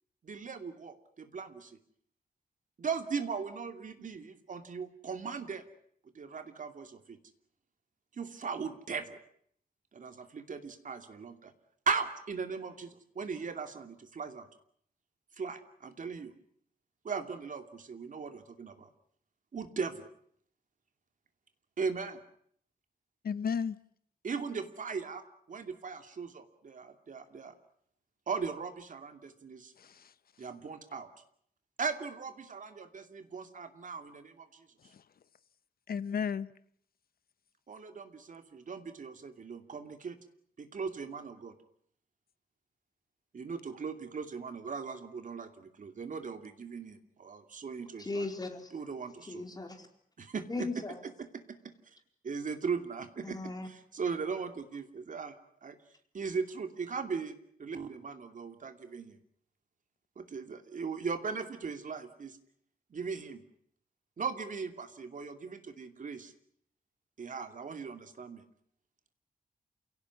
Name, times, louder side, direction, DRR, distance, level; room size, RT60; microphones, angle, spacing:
voice 1, 0.2-1.8 2.8-5.7 6.1-7.2 8.1-9.2 9.9-11.5 11.9-14.5 15.3-16.3 17.0-18.9 19.5-20.1 21.8-22.2 24.2-27.5 28.3-29.7 30.4-31.1 31.8-34.9 37.7-40.2 40.6-41.5 43.3-48.2 48.7-49.4 50.2-50.7 51.2-52.0 52.2-53.4 53.6-55.8 56.1-59.2 60.2-62.4 62.9-63.4 64.2-66.3 67.2-68.4, right 5 dB, 55° right, 2.7 m, -38 dB
voice 2, 23.2-23.8 29.8-30.1 34.9-35.0 35.9-36.5, left 7 dB, 70° left, 1.1 m, -33 dB
voice 3, 48.0-48.7 49.2-49.9 50.5-51.0 53.2-53.7, left 3 dB, 25° left, 4.3 m, -38 dB
28.5 x 17.5 x 9.7 m
wide cardioid pair, 145°, 16 cm